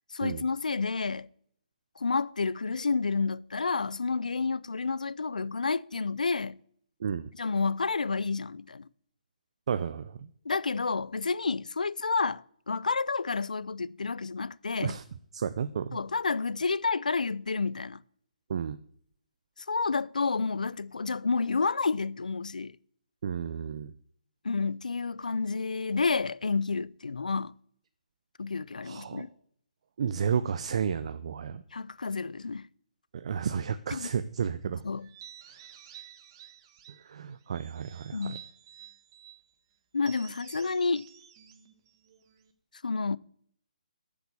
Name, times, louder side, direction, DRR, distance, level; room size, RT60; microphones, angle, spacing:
voice 1, 0.1-1.3 2.0-6.6 7.4-8.8 10.5-15.0 15.9-18.0 19.7-22.7 24.4-27.5 28.4-29.3 31.7-32.7 33.9-34.1 34.8-35.1 38.1-38.4 39.9-41.0 42.8-43.2, left 4 dB, 85° left, 0.4 m, -30 dB
voice 2, 9.7-10.3 14.8-15.0 15.3-16.0 18.5-18.8 23.2-23.9 28.8-29.3 30.0-31.6 33.1-34.8 37.0-38.4, right 7 dB, 50° right, 0.6 m, -32 dB
sound 1, 35.0-37.1 37.5-39.4 40.0-42.5, right 10 dB, 35° right, 1.2 m, -51 dB
8.8 x 7.3 x 8.3 m
hypercardioid pair, 150°, 4 cm